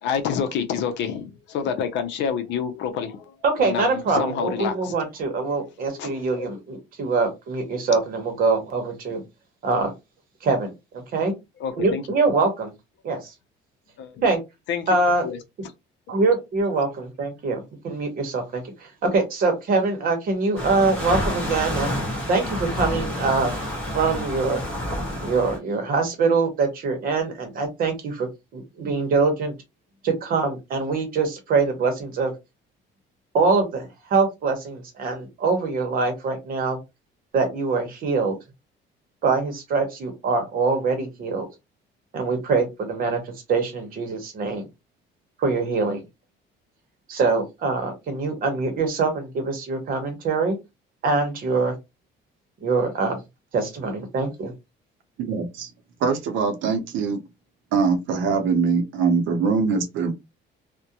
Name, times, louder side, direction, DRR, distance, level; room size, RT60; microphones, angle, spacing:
voice 1, 0.0-4.9 5.9-6.5 11.6-12.0 14.0-14.3 14.7-14.9 15.2-15.4, left 7 dB, 65° left, 0.6 m, -28 dB
voice 2, 3.4-9.2 9.6-9.9 10.4-11.3 11.8-12.7 13.0-13.3 14.2-14.4 14.9-15.2 16.1-22.0 22.3-23.7 23.9-24.6 25.2-29.5 30.0-32.3 33.3-36.8 37.3-38.4 39.2-41.5 42.1-44.7 45.4-46.0 47.1-50.6 51.0-51.7 52.6-53.2 53.5-54.5, right 4 dB, 45° right, 0.8 m, -24 dB
sound 1, 20.6-25.6, equal, 5° left, 1.2 m, -29 dB
voice 3, 55.2-55.7 56.0-57.2 57.7-60.1, right 5 dB, 75° right, 0.6 m, -22 dB
2.3 x 2.1 x 2.7 m
cardioid pair, 175°, 20 cm